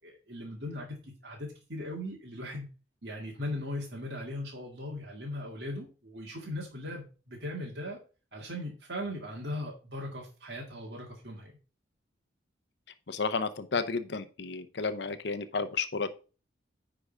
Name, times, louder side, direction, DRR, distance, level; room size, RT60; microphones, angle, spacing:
voice 1, 0.0-2.7 3.0-8.0 8.3-11.5, left 1 dB, 60° right, -2 dB, 2.0 m, -39 dB
voice 2, 13.1-16.2, left 4 dB, 65° left, 10 dB, 0.7 m, -32 dB
9.8 x 3.9 x 5.0 m, 0.35 s
head